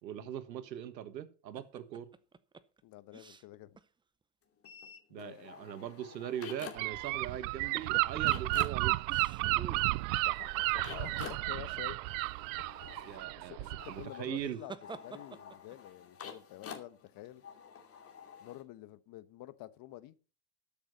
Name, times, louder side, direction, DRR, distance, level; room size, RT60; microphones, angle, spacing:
voice 1, 0.0-2.1 5.1-9.2 13.0-14.6, right 10 dB, 90° right, 1.5 m, -41 dB
sound 1, 1.5-3.9 4.2-4.3 6.7-7.3 7.7-8.4 9.1-9.9 14.0-15.8, right 5 dB, 10° right, 0.6 m, -49 dB
voice 2, 2.8-3.8 5.1-5.8 10.2-12.0 12.6-12.7 12.9-17.4 18.4-20.1, left 15 dB, 45° left, 1.1 m, -49 dB
sound 2, 4.6-7.1 7.3-18.6, left 7 dB, 25° left, 2.6 m, -50 dB
Gull seagull / Wind, 6.8-14.1, right 23 dB, 55° right, 0.5 m, -32 dB
13.0 x 7.2 x 5.5 m
hypercardioid pair, 105°, 49 cm